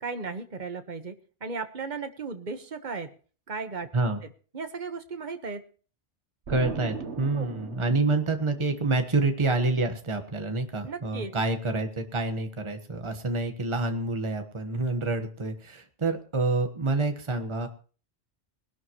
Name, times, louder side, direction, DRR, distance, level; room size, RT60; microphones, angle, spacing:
voice 1, 0.0-1.1 1.4-3.1 3.5-3.9 4.5-5.6 7.3-7.5 10.8-11.3, right 4 dB, 45° right, 8 dB, 1.4 m, -35 dB
voice 2, 6.5-17.7, right 3 dB, 25° right, 6 dB, 1.4 m, -27 dB
Explosion, 6.5-9.1, right 5 dB, 75° right, 1.5 m, -38 dB
20.5 x 12.0 x 3.1 m, 0.39 s
omnidirectional pair, 1.2 m